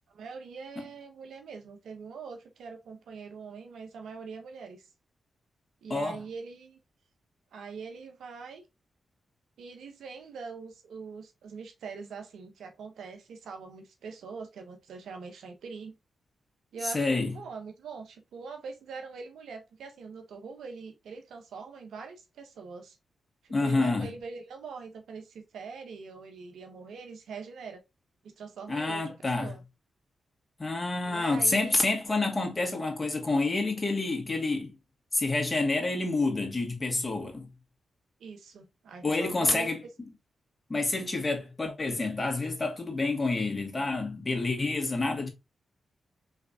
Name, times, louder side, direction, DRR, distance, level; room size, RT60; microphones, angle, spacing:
voice 1, 0.1-4.9 5.8-6.8 7.5-8.6 9.6-16.0 16.7-23.0 23.4-27.8 28.2-29.6 31.1-31.8 38.2-39.7, right 5 dB, 80° right, 0.9 m, -43 dB
voice 2, 16.8-17.3 23.5-24.1 28.7-29.5 30.6-34.8 35.1-37.5 39.0-39.8 40.7-45.3, left 3 dB, 35° left, 2.0 m, -28 dB
5.0 x 3.3 x 2.7 m
supercardioid pair, 45°, 0 cm